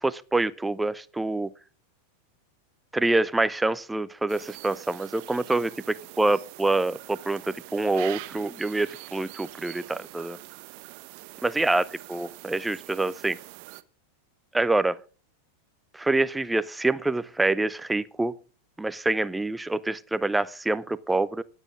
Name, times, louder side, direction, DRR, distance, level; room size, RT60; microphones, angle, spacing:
voice 1, 0.0-1.5 2.9-10.4 11.4-11.8 12.1-13.4 14.5-15.0 15.9-18.3 18.8-21.4, right 2 dB, 5° right, 0.6 m, -26 dB
sound 1, 4.3-13.8, right 21 dB, 45° right, 0.8 m, -44 dB
24.5 x 8.2 x 2.4 m
figure-of-eight pair, 90°, 0 cm